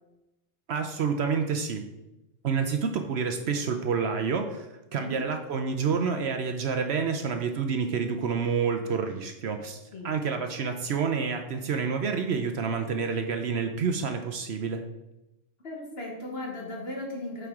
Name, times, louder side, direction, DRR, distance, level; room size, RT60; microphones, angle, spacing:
voice 1, 0.7-1.9 2.4-14.8, right 5 dB, 60° right, 5 dB, 0.8 m, -28 dB
voice 2, 15.6-17.5, left 1 dB, 50° left, 0 dB, 1.6 m, -36 dB
8.5 x 4.5 x 3.6 m, 0.95 s
omnidirectional pair, 1.3 m